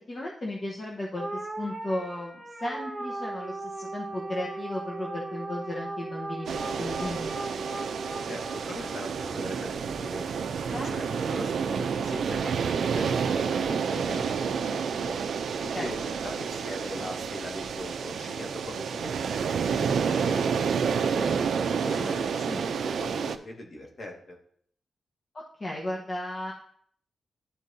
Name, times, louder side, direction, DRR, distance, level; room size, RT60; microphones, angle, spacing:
voice 1, 0.1-7.3 10.7-10.9 15.7-15.9 22.3-22.6 25.3-26.5, left 1 dB, 35° left, -3 dB, 1.1 m, -35 dB
sound 1, 1.2-9.7, right 2 dB, 15° right, 1.3 m, -37 dB
sound 2, 6.5-23.4, right 6 dB, 75° right, 0.5 m, -29 dB
voice 2, 8.2-10.3 10.7-15.2 15.6-21.3 21.8-24.4, left 1 dB, 50° left, 0 dB, 1.9 m, -40 dB
12.5 x 4.5 x 2.8 m, 0.62 s
cardioid pair, 95°, 0 cm